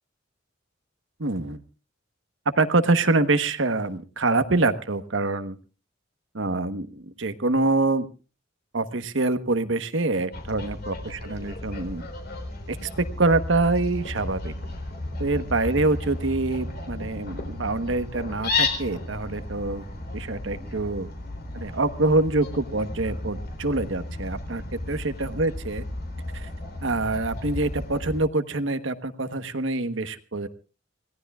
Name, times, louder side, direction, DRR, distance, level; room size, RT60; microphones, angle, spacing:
voice 1, 1.2-1.6 2.5-5.6 6.3-8.1 8.7-12.1 12.7-12.9 13.2-14.5 15.2-19.8 20.1-21.1 21.5-25.8 26.3-26.5 26.8-30.5, right 2 dB, 70° right, 10 dB, 1.2 m, -25 dB
Fowl, 10.3-28.2, left 2 dB, 50° left, 3.8 m, -34 dB
27.0 x 17.5 x 2.4 m, 0.34 s
head